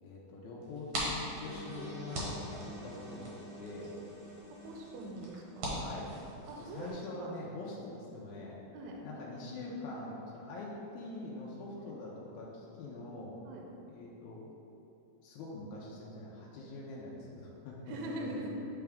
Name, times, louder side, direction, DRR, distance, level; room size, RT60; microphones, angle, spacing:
voice 1, 0.0-3.9 5.7-6.1 6.6-8.6 9.0-13.3 13.9-14.5 15.2-18.6, left 2 dB, 80° left, -5 dB, 2.0 m, -44 dB
sound 1, 0.6-6.9, right 1 dB, 60° right, 1.4 m, -42 dB
sound 2, 1.4-6.4, equal, 60° left, 0.8 m, -49 dB
voice 2, 4.5-5.8 6.5-7.3 8.7-9.0 11.8-11.9 13.5-13.7 16.6-16.7 17.9-18.5, right 1 dB, 75° right, 0 dB, 1.8 m, -43 dB
8.5 x 3.4 x 3.5 m, 2.8 s
omnidirectional pair, 3.6 m